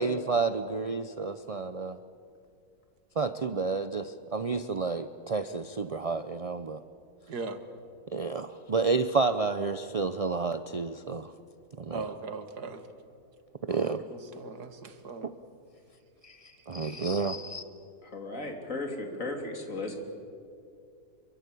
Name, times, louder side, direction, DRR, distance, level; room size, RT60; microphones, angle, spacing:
voice 1, 0.0-2.0 3.2-6.8 8.1-11.3 11.8-12.1 13.6-14.0 16.2-17.6, right 4 dB, 50° right, 10 dB, 0.4 m, -30 dB
voice 2, 7.3-7.6 11.9-12.8 13.7-15.3 16.8-17.0, right 4 dB, 90° right, 8 dB, 2.3 m, -39 dB
voice 3, 18.0-20.0, left 2 dB, 55° left, 3 dB, 3.5 m, -35 dB
26.5 x 24.0 x 8.4 m, 2.4 s
omnidirectional pair, 1.7 m